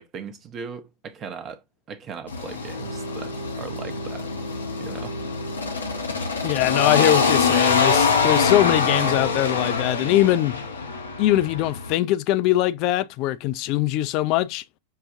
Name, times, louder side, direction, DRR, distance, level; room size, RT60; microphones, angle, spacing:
voice 1, 0.0-4.3 4.8-5.2, right 5 dB, 30° right, 0.8 m, -38 dB
sound 1, 2.3-11.9, left 4 dB, 75° left, 0.9 m, -24 dB
voice 2, 6.4-10.5 11.2-14.6, left 15 dB, 40° left, 0.4 m, -22 dB
6.4 x 2.3 x 2.6 m
figure-of-eight pair, 90°, 0 cm